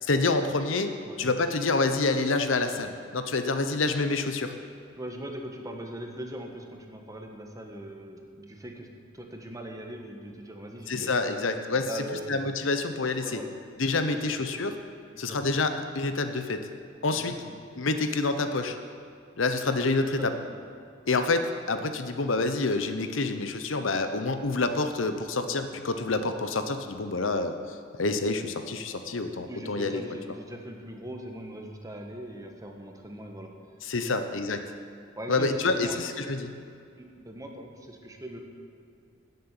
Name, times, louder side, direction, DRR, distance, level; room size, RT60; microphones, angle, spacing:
voice 1, 0.0-0.9 1.2-4.5 10.9-12.0 12.3-13.4 13.8-14.7 15.2-16.6 17.0-17.3 17.8-18.8 19.4-20.3 21.1-27.5 28.0-30.0 33.8-34.6 35.3-36.5, left 3 dB, 75° left, 8 dB, 0.9 m, -27 dB
voice 2, 5.0-8.9 9.1-11.1 11.7-12.4 13.2-13.5 14.1-14.3 15.1-15.4 17.1-17.5 20.2-20.6 29.4-33.5 34.1-34.3 35.2-36.0 37.0-38.4, right 1 dB, 20° right, 2 dB, 1.5 m, -40 dB
13.0 x 7.8 x 9.0 m, 2.4 s
head